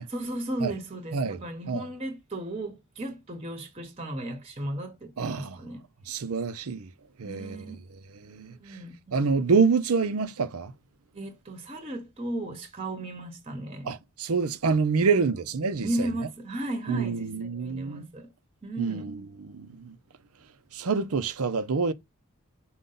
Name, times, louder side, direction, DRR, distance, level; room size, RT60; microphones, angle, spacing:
voice 1, 0.0-5.8 7.2-7.8 8.2-8.9 11.1-13.9 15.0-15.3 15.8-18.3 18.6-19.1, right 1 dB, 25° right, 0.9 m, -35 dB
voice 2, 5.2-5.6 6.1-6.9 7.2-7.7 8.2-8.8 9.1-10.7 13.8-16.1 16.9-18.1 18.8-19.9 20.7-21.9, right 5 dB, 80° right, 0.6 m, -27 dB
5.3 x 2.3 x 3.8 m
head